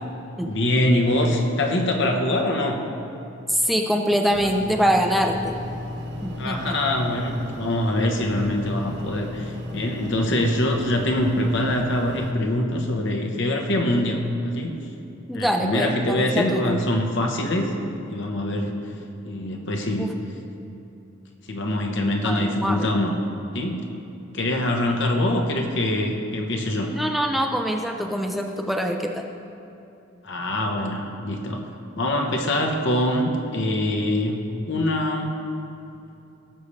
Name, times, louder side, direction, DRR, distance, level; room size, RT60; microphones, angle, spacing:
voice 1, 0.5-2.8 6.4-14.7 15.3-17.7 18.1-18.7 19.2-20.1 21.4-23.1 23.5-23.8 24.3-26.9 30.2-34.4 34.7-35.3, left 1 dB, 65° left, 2 dB, 1.2 m, -24 dB
voice 2, 3.5-5.6 6.2-6.8 15.3-16.8 20.0-20.1 22.2-22.9 26.9-29.3, equal, ahead, 2 dB, 0.5 m, -24 dB
sound 1, 4.3-12.3, left 1 dB, 60° right, 1.0 m, -34 dB
17.5 x 6.9 x 3.4 m, 2.9 s
head